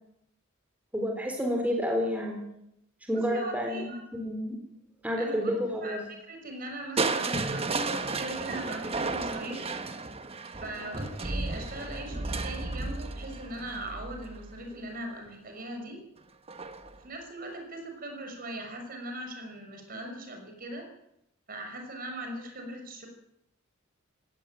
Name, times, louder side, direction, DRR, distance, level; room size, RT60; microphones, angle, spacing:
voice 1, 0.9-2.4 3.1-4.6 5.0-6.0, equal, 10° right, 1 dB, 4.0 m, -30 dB
voice 2, 3.1-4.0 5.2-5.5 5.8-9.7 10.6-16.0 16.9-20.9 21.5-23.1, right 1 dB, 45° right, 4 dB, 5.8 m, -40 dB
Crushing, 7.0-14.9 16.5-17.0 17.5-17.6, right 3 dB, 30° right, 1.3 m, -33 dB
18.5 x 16.5 x 9.1 m, 0.79 s
head